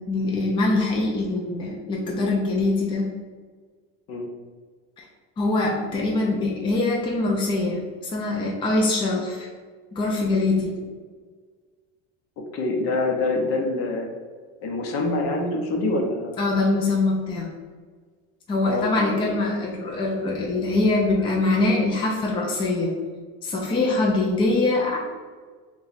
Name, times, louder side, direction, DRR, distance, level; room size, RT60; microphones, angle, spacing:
voice 1, 0.1-3.1 5.0-5.1 5.4-9.5 9.9-10.7 16.4-17.5 18.5-22.9 23.4-25.0, left 2 dB, 15° left, -2 dB, 0.5 m, -23 dB
voice 2, 12.5-14.1 14.6-16.4 18.6-19.3 19.6-19.7, left 2 dB, 50° left, 1 dB, 0.8 m, -25 dB
3.9 x 2.4 x 4.0 m, 1.5 s
cardioid pair, 135°, 31 cm